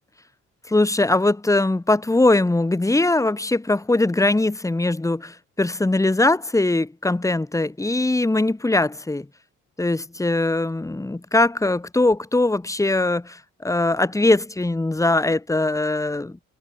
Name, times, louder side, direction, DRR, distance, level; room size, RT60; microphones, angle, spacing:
voice 1, 0.7-9.3 9.8-16.5, left 2 dB, 10° left, 1.5 m, -21 dB
cardioid pair, 90°, 30 cm